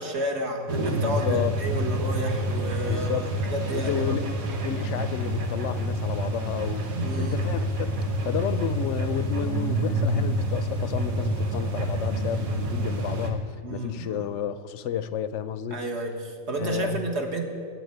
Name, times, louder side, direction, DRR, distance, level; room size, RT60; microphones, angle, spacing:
voice 1, 0.0-3.2 3.5-4.2 6.9-7.4 13.6-14.3 15.7-17.4, right 1 dB, 55° right, 1.7 m, -31 dB
sound 1, 0.7-13.3, right 1 dB, 85° right, 1.8 m, -28 dB
voice 2, 1.0-1.6 2.9-3.3 3.7-8.0 8.2-13.5 13.7-15.8 16.6-17.0, left 9 dB, 70° left, 0.8 m, -31 dB
10.5 x 8.6 x 9.7 m
omnidirectional pair, 1.4 m